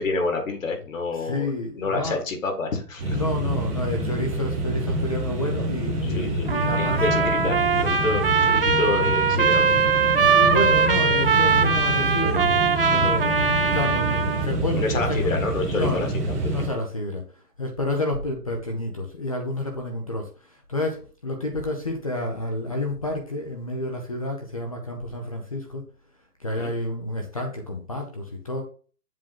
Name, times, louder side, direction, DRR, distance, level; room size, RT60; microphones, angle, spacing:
voice 1, 0.0-1.5 1.8-3.2 6.0-6.5 6.8-7.6 7.8-9.7 10.7-10.8 12.2-12.5 14.8-16.7 26.6-26.7, left 3 dB, 55° left, 4 dB, 2.0 m, -28 dB
voice 2, 1.2-2.2 3.1-7.3 10.2-12.5 12.9-13.4 13.7-15.3 15.8-17.2 17.6-25.8 26.4-28.6, left 2 dB, 25° left, 2 dB, 0.7 m, -29 dB
sound 1, 3.0-16.7, right 1 dB, 10° right, 1.1 m, -27 dB
Trumpet, 6.5-14.5, right 5 dB, 40° right, 0.5 m, -21 dB
7.6 x 3.6 x 5.7 m, 0.40 s
hypercardioid pair, 165°, 47 cm